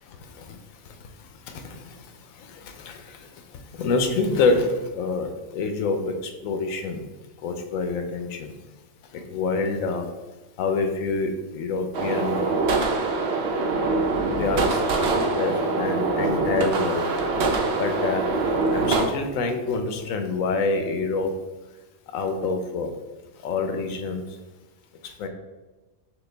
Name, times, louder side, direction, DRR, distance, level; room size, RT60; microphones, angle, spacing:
voice 1, 1.5-2.0 2.4-3.2 3.7-6.2 6.4-7.0 7.4-8.5 9.1-10.1 10.6-12.4 14.4-14.8 15.4-17.1 17.8-18.3 18.7-21.3 22.1-22.9 23.4-24.2 25.2-25.3, left 4 dB, 90° left, 6 dB, 1.0 m, -26 dB
sound 1, 11.9-19.1, right 3 dB, 60° right, 0.8 m, -24 dB
6.3 x 2.3 x 3.3 m, 1.2 s
omnidirectional pair, 1.4 m